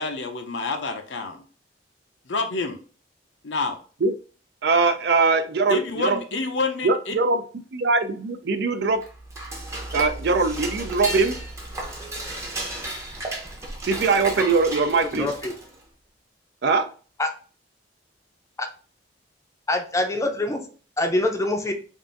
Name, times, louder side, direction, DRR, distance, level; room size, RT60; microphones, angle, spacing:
voice 1, 0.0-1.4 2.3-2.8 3.4-3.8 5.7-7.1, left 3 dB, 75° left, 0.7 m, -28 dB
voice 2, 4.6-6.2 6.8-7.4 7.7-9.0 9.9-11.4 13.8-15.3 16.6-16.8, right 4 dB, 65° right, 0.5 m, -21 dB
Dishes pots and pans / Cutlery silverware, 8.9-15.8, right 1 dB, 15° right, 0.7 m, -34 dB
voice 3, 15.0-15.5 17.2-17.3 18.6-18.7 19.7-20.6 21.0-21.7, left 2 dB, 15° left, 0.5 m, -24 dB
3.6 x 2.5 x 3.8 m
head